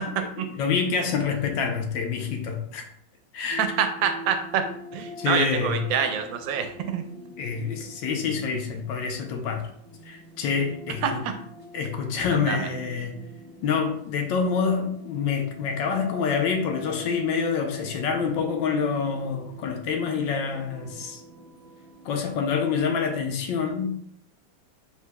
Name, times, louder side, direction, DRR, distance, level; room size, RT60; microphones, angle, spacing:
voice 1, 0.5-2.8 3.3-3.6 5.2-5.8 7.4-9.7 10.1-11.2 11.7-13.2 13.6-21.2 22.0-23.9, left 5 dB, 80° left, 4 dB, 1.3 m, -27 dB
sound 1, 3.5-22.1, left 1 dB, 25° right, 0.5 m, -44 dB
voice 2, 3.6-4.6 4.9-7.0 11.0-11.3 12.3-12.7, right 7 dB, 85° right, 7 dB, 1.3 m, -26 dB
4.6 x 4.0 x 2.2 m, 0.66 s
omnidirectional pair, 2.0 m